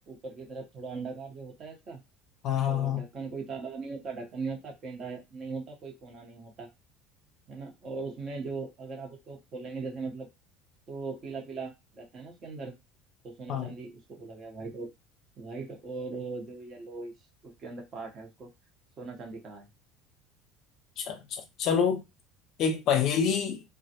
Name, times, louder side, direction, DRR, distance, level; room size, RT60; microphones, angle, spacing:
voice 1, 0.1-2.0 2.6-6.7 7.5-10.3 10.9-12.8 13.2-14.9 15.4-17.1 17.4-18.5 19.0-19.7, right 4 dB, 45° right, 0.9 m, -39 dB
voice 2, 2.4-3.0 13.5-13.7 21.0-22.0 22.6-23.6, left 7 dB, 60° left, 0.5 m, -27 dB
2.2 x 2.1 x 2.8 m
hypercardioid pair, 80°, 0 cm